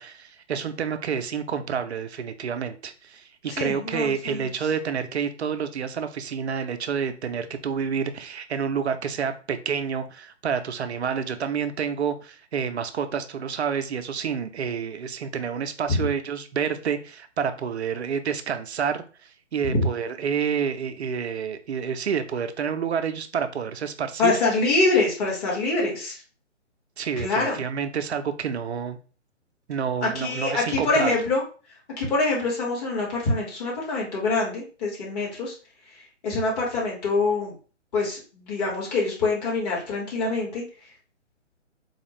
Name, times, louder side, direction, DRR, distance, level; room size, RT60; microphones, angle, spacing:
voice 1, 0.0-19.0 19.5-24.3 27.0-29.0 29.7-31.1, right 7 dB, 60° right, 9 dB, 0.6 m, -28 dB
voice 2, 3.5-4.5 15.9-16.0 19.6-19.8 24.2-26.2 27.2-27.6 30.0-31.4 32.0-35.5 36.2-37.5 37.9-40.6, left 3 dB, 35° left, -4 dB, 1.8 m, -25 dB
4.2 x 2.3 x 3.1 m, 0.36 s
figure-of-eight pair, 140°, 37 cm